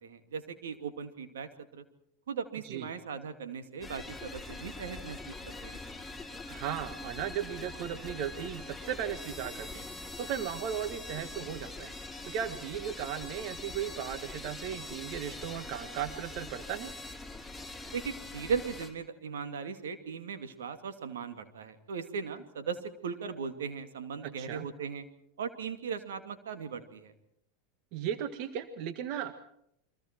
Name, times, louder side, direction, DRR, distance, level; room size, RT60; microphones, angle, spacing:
voice 1, 0.0-1.8 2.3-5.8 17.9-25.0 25.4-27.1, right 6 dB, 80° right, 8 dB, 2.4 m, -38 dB
sound 1, 3.8-18.9, left 2 dB, ahead, 5.6 m, -43 dB
voice 2, 6.5-11.9 12.2-16.9 24.2-24.7 27.9-29.3, right 9 dB, 55° right, 10 dB, 1.6 m, -36 dB
30.0 x 24.0 x 4.5 m, 0.73 s
hypercardioid pair, 95°, 0 cm